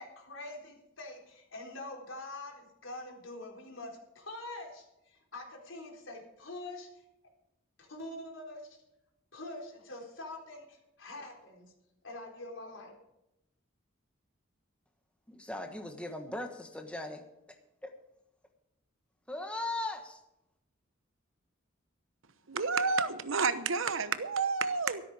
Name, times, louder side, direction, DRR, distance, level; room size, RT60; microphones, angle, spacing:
voice 1, 0.0-6.9 7.8-8.8 9.3-11.7 12.0-13.0, left 2 dB, 75° left, 4.0 m, -45 dB
voice 2, 15.3-17.2 17.8-17.9 19.3-20.2, left 2 dB, 5° left, 1.3 m, -38 dB
voice 3, 22.5-25.0, right 4 dB, 80° right, 1.0 m, -30 dB
13.5 x 13.0 x 4.9 m
head